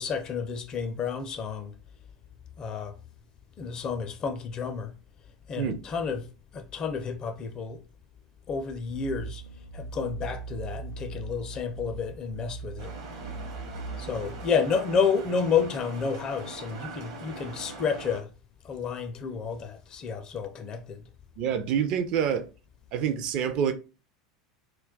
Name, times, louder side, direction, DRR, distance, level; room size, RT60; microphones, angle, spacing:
voice 1, 0.0-1.7 2.6-3.0 3.6-4.9 5.5-6.3 6.5-7.8 8.5-9.4 9.7-12.9 14.0-18.3 18.6-21.0, left 6 dB, 35° left, 0.4 m, -30 dB
sound 1, 8.9-14.4, right 4 dB, 90° right, 0.8 m, -40 dB
sound 2, 12.8-18.2, right 3 dB, 65° right, 0.8 m, -42 dB
voice 2, 21.4-22.5 22.9-23.7, right 8 dB, 45° right, 0.4 m, -27 dB
2.2 x 2.2 x 3.6 m
figure-of-eight pair, 75°, 2 cm